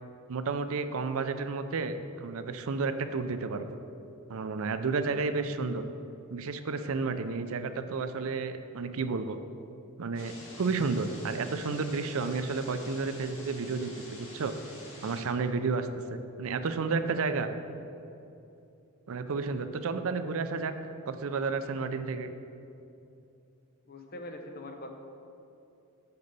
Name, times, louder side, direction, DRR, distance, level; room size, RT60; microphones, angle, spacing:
voice 1, 0.3-3.7 4.3-5.8 6.3-9.4 10.0-14.5 15.0-17.5 19.1-20.7 21.1-22.3, right 4 dB, 65° right, 10 dB, 0.5 m, -31 dB
sound 1, 10.1-15.2, left 1 dB, 60° left, 2.0 m, -47 dB
voice 2, 23.9-24.9, left 1 dB, 45° left, 4 dB, 0.8 m, -42 dB
6.7 x 5.3 x 6.8 m, 2.8 s
head